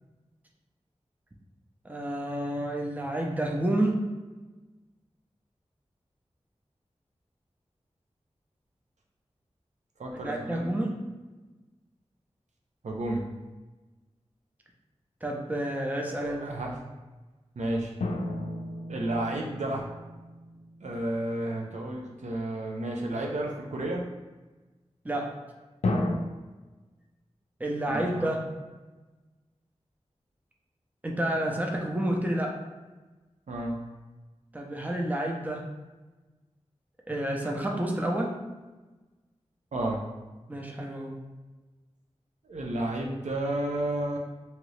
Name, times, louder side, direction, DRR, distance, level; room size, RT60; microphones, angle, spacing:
voice 1, 1.8-4.0 10.2-11.0 15.2-16.4 25.0-25.4 27.6-28.5 31.0-32.6 34.5-35.7 37.1-38.4 40.5-41.2, right 1 dB, 15° right, 0 dB, 0.5 m, -29 dB
voice 2, 10.0-10.7 12.8-13.2 16.2-16.7 17.6-17.9 18.9-19.9 20.8-24.0 27.9-28.3 33.5-33.8 39.7-40.0 42.4-44.2, right 1 dB, 85° right, -1 dB, 0.5 m, -31 dB
sound 1, 18.0-20.9 25.8-26.2, left 2 dB, 70° left, 0.4 m, -32 dB
2.9 x 2.6 x 3.1 m, 1.2 s
wide cardioid pair, 60°, 12 cm